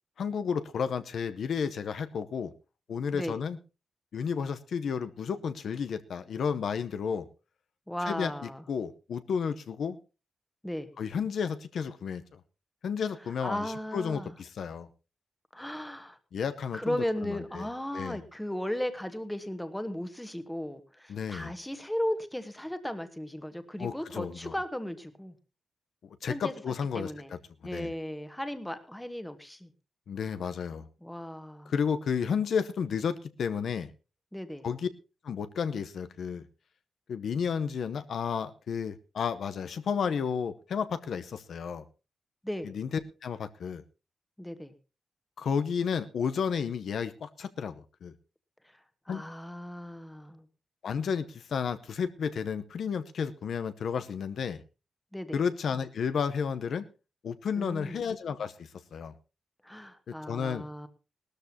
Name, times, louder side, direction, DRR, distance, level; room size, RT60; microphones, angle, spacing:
voice 1, 0.2-2.5 2.9-3.6 4.1-7.3 8.1-10.0 11.0-12.4 12.8-14.9 16.3-17.0 17.2-17.7 17.9-18.2 21.1-21.5 23.8-24.5 26.2-27.4 27.7-27.9 30.1-30.9 31.7-33.9 34.6-34.9 35.2-36.5 37.1-41.8 42.6-42.9 43.2-43.8 45.4-48.1 49.1-49.2 50.8-54.6 55.3-56.8 57.2-59.1 60.1-60.7, left 6 dB, 65° left, 11 dB, 0.8 m, -32 dB
voice 2, 7.9-8.6 10.6-10.9 13.4-14.3 15.5-16.2 16.7-25.3 26.3-26.5 26.9-27.3 27.6-29.7 31.0-31.7 34.3-34.7 42.4-42.7 44.4-44.7 49.1-50.4 55.1-55.4 57.5-58.0 59.6-60.9, equal, 5° left, 10 dB, 1.3 m, -36 dB
18.5 x 13.0 x 2.8 m, 0.30 s
wide cardioid pair, 145°, 0 cm